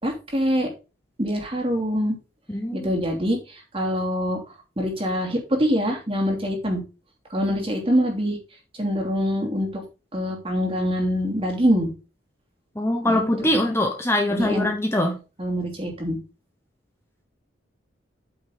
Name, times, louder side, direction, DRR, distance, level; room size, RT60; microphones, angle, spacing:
voice 1, 0.0-0.7 1.2-2.2 2.7-6.8 7.3-8.4 8.8-9.8 10.1-11.9 13.1-13.6 14.3-14.7 15.4-16.2, equal, 30° right, 2.8 m, -24 dB
voice 2, 2.5-2.9 12.7-15.2, left 1 dB, 15° left, 1.1 m, -23 dB
8.7 x 6.5 x 3.9 m
head